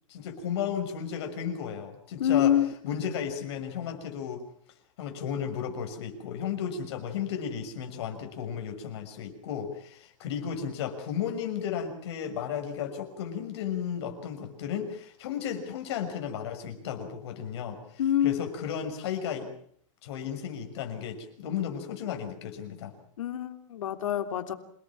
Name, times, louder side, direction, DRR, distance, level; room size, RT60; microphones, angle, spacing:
voice 1, 0.1-2.5 2.8-4.4 5.0-19.5 20.0-22.9, left 8 dB, 55° left, 5 dB, 6.3 m, -34 dB
voice 2, 2.2-2.7 18.0-18.4 23.2-24.5, left 10 dB, 80° left, 7 dB, 3.3 m, -26 dB
27.5 x 18.5 x 7.2 m, 0.63 s
supercardioid pair, 175°, 17 cm